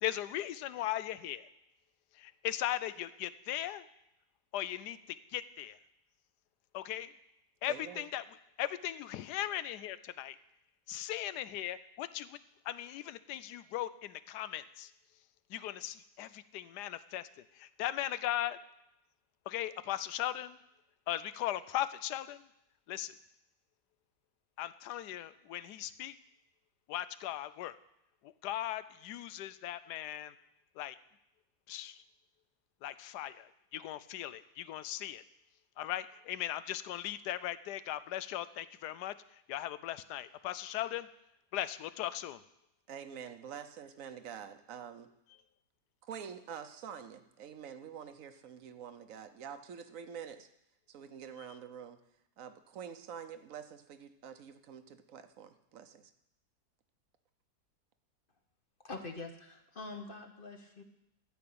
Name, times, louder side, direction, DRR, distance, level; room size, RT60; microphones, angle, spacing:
voice 1, 0.0-1.5 2.1-3.8 4.5-5.8 6.7-7.1 7.6-8.2 8.6-10.4 10.9-12.4 12.6-14.9 15.5-17.3 17.5-18.6 19.5-20.6 21.1-22.5 22.9-23.1 24.6-26.2 26.9-27.8 28.2-30.3 30.8-31.0 31.7-32.0 32.8-35.2 35.8-39.1 39.5-41.1 41.5-42.4, left 13 dB, 90° left, 15 dB, 1.2 m, -38 dB
voice 2, 7.7-8.1 42.9-45.1 46.0-50.5 50.9-52.0 52.4-56.1, right 8 dB, 60° right, 9 dB, 1.1 m, -47 dB
voice 3, 58.8-60.8, left 3 dB, 40° left, 4 dB, 1.1 m, -44 dB
13.0 x 5.2 x 8.5 m, 0.82 s
omnidirectional pair, 1.7 m